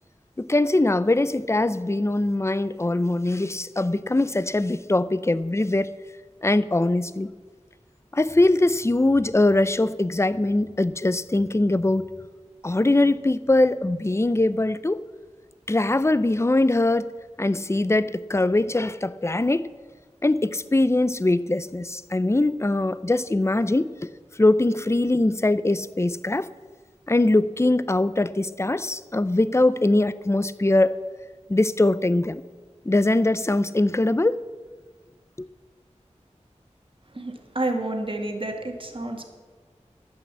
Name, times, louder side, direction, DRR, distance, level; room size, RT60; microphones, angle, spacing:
voice 1, 0.4-5.9 6.4-7.3 8.1-12.1 12.6-15.0 15.7-17.1 17.4-19.7 20.2-23.9 24.4-26.5 27.1-31.0 31.5-32.4 32.9-34.4, left 2 dB, 20° left, 0.5 m, -22 dB
voice 2, 37.1-39.3, right 2 dB, 45° right, 1.9 m, -30 dB
11.5 x 8.5 x 7.5 m
wide cardioid pair, 45°, 13 cm